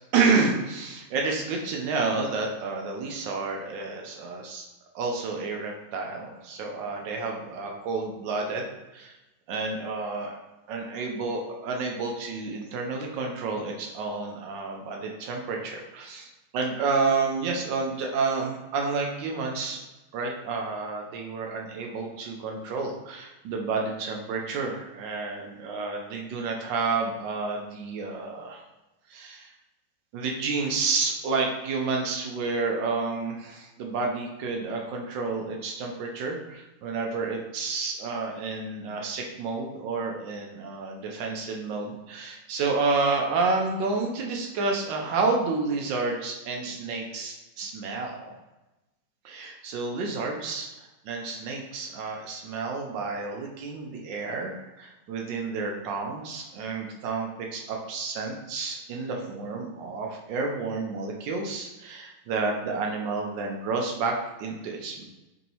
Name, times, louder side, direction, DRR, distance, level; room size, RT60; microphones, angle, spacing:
voice 1, 0.1-4.7 4.9-8.7 8.9-9.2 9.5-10.4 10.7-19.8 20.1-28.6 29.1-29.5 30.1-48.4 49.2-65.0, right 4 dB, 85° right, 1 dB, 1.3 m, -30 dB
4.1 x 2.7 x 2.7 m, 1.0 s
omnidirectional pair, 2.0 m